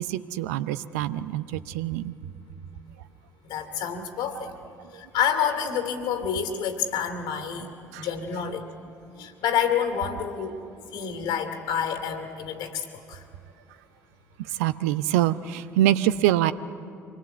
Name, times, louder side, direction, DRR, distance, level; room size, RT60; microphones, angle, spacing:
voice 1, 0.0-2.1 7.9-8.0 14.6-16.5, right 13 dB, 70° right, 14 dB, 0.6 m, -25 dB
voice 2, 3.4-4.5 4.9-8.6 9.2-10.5 10.9-13.2, left 8 dB, 65° left, 7 dB, 2.7 m, -28 dB
25.0 x 20.5 x 8.1 m, 2.5 s
figure-of-eight pair, 50°, 8 cm